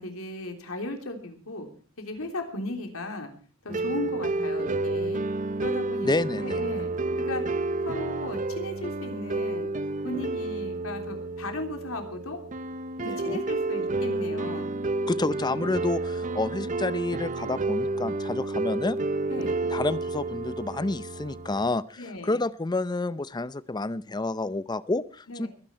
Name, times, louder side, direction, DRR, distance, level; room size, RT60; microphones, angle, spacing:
voice 1, 0.0-1.7 2.0-3.3 3.6-5.2 5.6-6.1 6.4-6.9 7.2-7.4 7.8-9.7 10.0-12.4 13.0-14.7 19.3-19.7 22.0-22.4 25.3-25.5, left 2 dB, 80° left, 5 dB, 3.3 m, -36 dB
sound 1, 3.7-21.7, right 2 dB, 35° right, 0.7 m, -30 dB
voice 2, 6.0-6.6 13.0-13.4 15.1-19.0 19.7-25.5, left 2 dB, 20° left, 17 dB, 0.6 m, -29 dB
22.0 x 10.0 x 4.4 m, 0.39 s
head